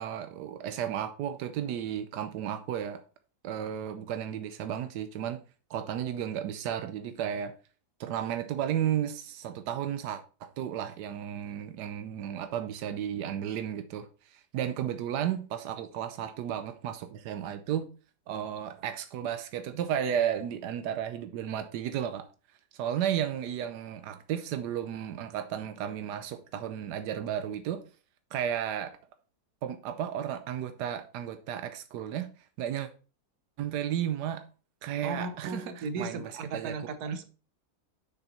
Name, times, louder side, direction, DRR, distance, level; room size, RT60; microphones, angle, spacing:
voice 1, 0.0-3.0 3.4-5.4 5.7-7.5 8.0-17.8 18.3-22.3 22.7-27.8 28.3-28.9 29.6-32.3 32.6-32.9 33.6-34.4 34.8-36.7 37.1-37.2, right 9 dB, 90° right, 1.3 m, -33 dB
voice 2, 35.0-37.2, right 3 dB, 70° right, 1.5 m, -36 dB
6.8 x 5.9 x 4.1 m
omnidirectional pair, 1.7 m